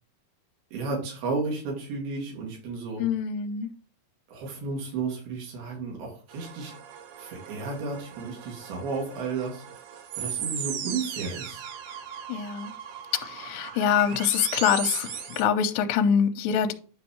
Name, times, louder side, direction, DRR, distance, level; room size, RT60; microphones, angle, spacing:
voice 1, 0.7-3.0 4.3-6.7 7.2-9.8 10.2-11.7, right 4 dB, 85° right, 4.4 m, -33 dB
voice 2, 3.0-3.7 12.3-12.7 13.1-16.7, left 8 dB, 75° left, 2.3 m, -25 dB
sound 1, 6.3-15.4, right 8 dB, 65° right, 2.2 m, -37 dB
9.7 x 5.3 x 3.1 m
omnidirectional pair, 4.3 m